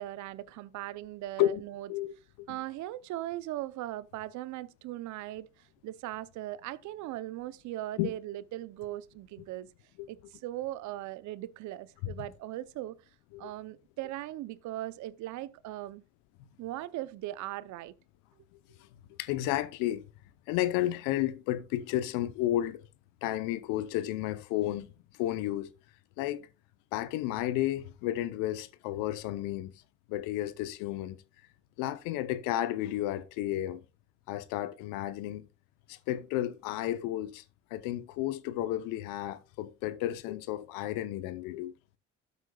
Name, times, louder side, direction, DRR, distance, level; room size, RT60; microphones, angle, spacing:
voice 1, 0.0-1.9 2.5-5.5 5.8-9.7 10.1-13.0 13.4-16.0 16.6-17.9, right 15 dB, 65° right, 0.7 m, -39 dB
voice 2, 19.2-20.0 20.5-22.8 23.2-24.9 25.2-25.7 26.2-26.5 26.9-29.7 30.1-31.2 31.8-33.8 34.3-35.5 35.9-37.4 37.7-41.7, left 14 dB, 80° left, 0.8 m, -32 dB
12.5 x 8.1 x 2.3 m
supercardioid pair, 90°, 32 cm